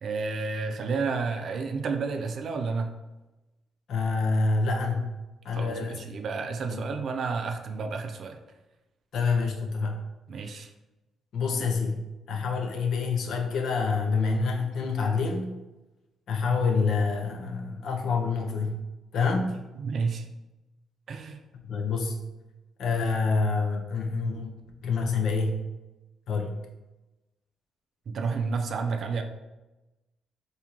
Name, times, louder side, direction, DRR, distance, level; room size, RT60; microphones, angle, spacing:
voice 1, 0.0-2.9 5.5-8.4 10.3-10.7 19.8-20.3 21.1-21.4 28.1-29.2, right 4 dB, 55° right, 5 dB, 0.4 m, -31 dB
voice 2, 3.9-5.2 5.4-6.2 6.7-6.9 9.1-10.0 11.3-15.5 16.3-18.8 19.1-19.6 21.6-22.2 22.8-24.5 24.8-25.6 26.3-26.6, left 4 dB, 70° left, 2 dB, 0.6 m, -27 dB
3.7 x 2.7 x 2.9 m, 1.1 s
cardioid pair, 90°, 0 cm